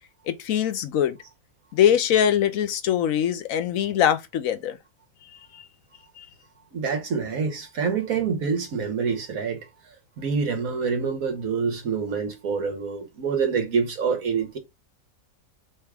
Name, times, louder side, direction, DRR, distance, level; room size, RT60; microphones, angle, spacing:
voice 1, 0.3-1.2 1.7-4.8 5.5-5.6 6.2-6.3, left 9 dB, 75° left, 1.0 m, -22 dB
voice 2, 6.7-9.7 10.2-14.6, right 5 dB, 80° right, 1.5 m, -26 dB
3.5 x 3.2 x 4.7 m
omnidirectional pair, 1.5 m